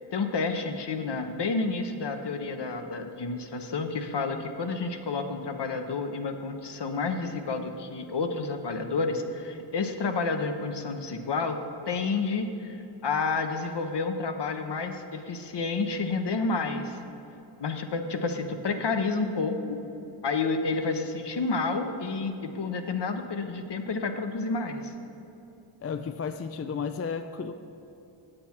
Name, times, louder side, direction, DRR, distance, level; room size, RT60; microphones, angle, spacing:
voice 1, 0.1-11.6 11.9-12.8 13.0-17.0 17.6-19.8 20.2-24.9, left 4 dB, 55° left, 6 dB, 0.9 m, -30 dB
voice 2, 25.8-27.5, left 6 dB, 30° left, 9 dB, 0.4 m, -33 dB
8.2 x 7.7 x 4.4 m, 3.0 s
cardioid pair, 50°, 49 cm